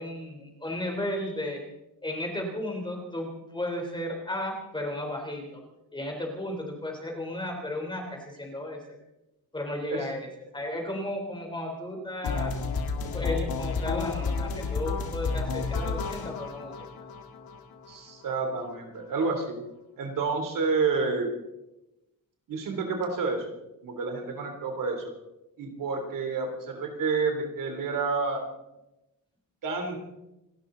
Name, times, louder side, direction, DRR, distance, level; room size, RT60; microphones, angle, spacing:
voice 1, 0.0-1.6 2.0-5.6 5.9-8.8 9.5-10.3 10.5-12.5 13.0-16.9, left 1 dB, 15° left, 1 dB, 3.6 m, -34 dB
sound 1, 12.2-18.2, left 4 dB, 85° left, 2.0 m, -31 dB
voice 2, 17.9-19.5 20.0-21.3 22.5-23.4 23.8-25.1 25.6-28.4 29.6-30.0, right 4 dB, 65° right, 4 dB, 3.4 m, -29 dB
28.5 x 13.0 x 3.9 m, 0.93 s
wide cardioid pair, 180°, 35 cm